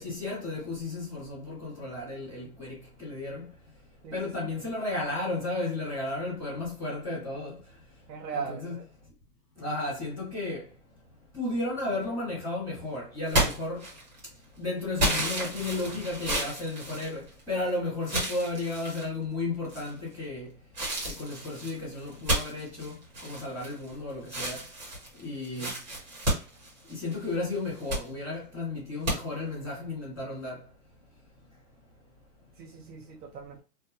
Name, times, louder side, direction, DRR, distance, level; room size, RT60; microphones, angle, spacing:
voice 1, 0.0-3.4 4.1-7.5 8.3-8.8 9.6-10.6 11.3-13.8 14.6-17.2 17.5-20.5 21.0-22.9 23.2-24.6 25.2-25.7 26.9-30.6, left 2 dB, 5° right, 1.5 m, -33 dB
voice 2, 4.0-4.5 8.1-8.9 25.3-25.7 32.6-33.6, right 6 dB, 75° right, 0.7 m, -39 dB
sound 1, 13.3-14.3 15.0-17.6 18.0-19.1 19.7-20.2 20.7-23.9 24.2-27.2 27.6-28.1 29.0-29.2, right 1 dB, 25° right, 1.1 m, -31 dB
2.7 x 2.4 x 2.4 m
hypercardioid pair, 175°, 49 cm